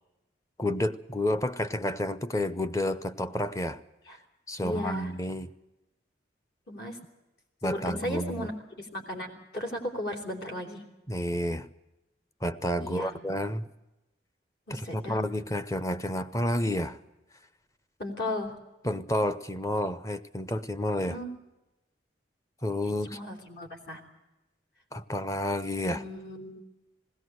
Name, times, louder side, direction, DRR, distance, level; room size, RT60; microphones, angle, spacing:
voice 1, 0.6-3.8 4.5-5.5 7.6-8.5 11.1-11.7 12.4-13.7 14.7-17.0 18.8-21.2 22.6-23.2 24.9-26.0, left 1 dB, 15° left, 12 dB, 0.7 m, -30 dB
voice 2, 4.6-5.1 6.7-7.0 7.6-8.5 8.8-10.8 12.8-13.1 14.7-15.2 18.0-18.5 21.1-21.3 23.0-24.0 25.9-26.6, left 1 dB, 60° left, 3 dB, 3.6 m, -36 dB
19.5 x 17.0 x 7.8 m, 1.0 s
head